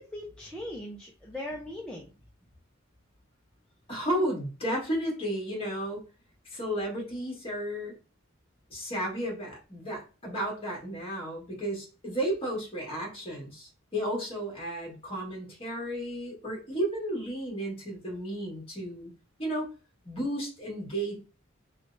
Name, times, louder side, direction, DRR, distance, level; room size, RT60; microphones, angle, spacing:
voice 1, 0.0-2.1, left 1 dB, 5° left, -3 dB, 0.4 m, -39 dB
voice 2, 3.9-6.0 6.5-8.0 8.7-19.1 19.4-19.7 20.0-21.2, right 1 dB, 25° left, -2 dB, 1.5 m, -33 dB
3.2 x 3.1 x 2.5 m, 0.33 s
head